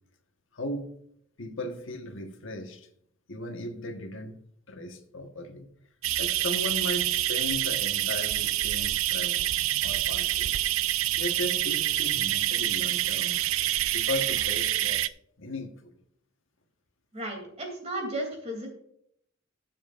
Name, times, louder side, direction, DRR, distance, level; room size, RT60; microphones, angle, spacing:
voice 1, 0.5-0.9 1.4-2.9 3.3-4.4 4.7-5.7 6.2-10.6 11.2-15.1 15.4-16.0, left 1 dB, 75° left, 1.4 m, -37 dB
sound 1, 6.0-15.1, right 14 dB, 85° right, 0.4 m, -27 dB
voice 2, 17.1-18.7, right 1 dB, 30° right, 3.0 m, -34 dB
19.0 x 7.6 x 2.6 m
head